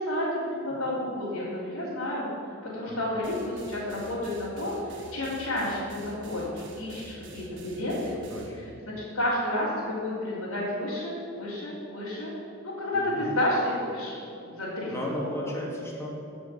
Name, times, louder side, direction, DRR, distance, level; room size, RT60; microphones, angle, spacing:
voice 1, 0.0-2.3 2.6-8.2 8.9-12.3 12.6-15.5, left 1 dB, 85° left, -11 dB, 3.7 m, -31 dB
sound 1, 3.2-8.5, right 1 dB, 60° right, 1.9 m, -46 dB
voice 2, 8.3-8.7 12.9-13.3 14.9-16.1, equal, 15° left, -2 dB, 2.5 m, -35 dB
16.0 x 6.3 x 7.5 m, 2.7 s
head